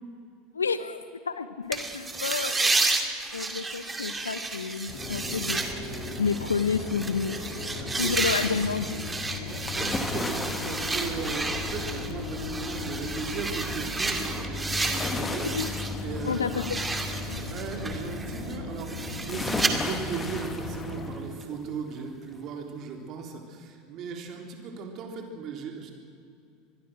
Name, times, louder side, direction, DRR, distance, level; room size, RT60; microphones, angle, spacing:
voice 1, 0.5-2.7 3.3-5.6 6.2-7.5 8.0-9.5 15.5-15.7 16.3-16.8 17.3-17.4, left 5 dB, 80° left, 13 dB, 1.1 m, -30 dB
sound 1, 1.7-15.9 16.3-19.7, right 3 dB, 15° right, 2.3 m, -32 dB
sound 2, 4.9-21.1, left 3 dB, 40° left, 5.9 m, -37 dB
voice 2, 7.8-8.1 9.5-15.5 16.0-16.4 17.4-25.9, right 6 dB, 45° right, 3 dB, 3.7 m, -37 dB
sound 3, 9.7-12.5 14.8-17.5 19.3-21.6 22.0-22.1, left 3 dB, 15° left, 1.8 m, -36 dB
25.5 x 21.0 x 6.4 m, 2.5 s
figure-of-eight pair, 75°, 0 cm